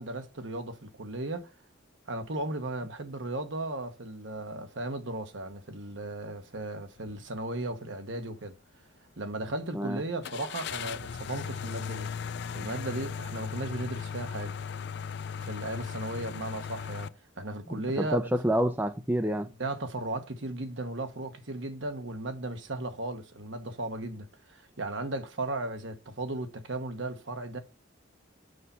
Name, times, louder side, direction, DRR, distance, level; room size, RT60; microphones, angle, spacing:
voice 1, 0.0-1.5 2.1-8.5 9.2-12.1 12.5-14.6 15.4-18.3 19.4-27.6, right 2 dB, 65° right, 1.1 m, -36 dB
sound 1, 7.0-7.2 7.6-7.7 10.2-17.1, left 7 dB, 55° left, 0.4 m, -37 dB
voice 2, 17.7-19.5, equal, 10° right, 0.5 m, -28 dB
6.5 x 5.6 x 5.5 m
head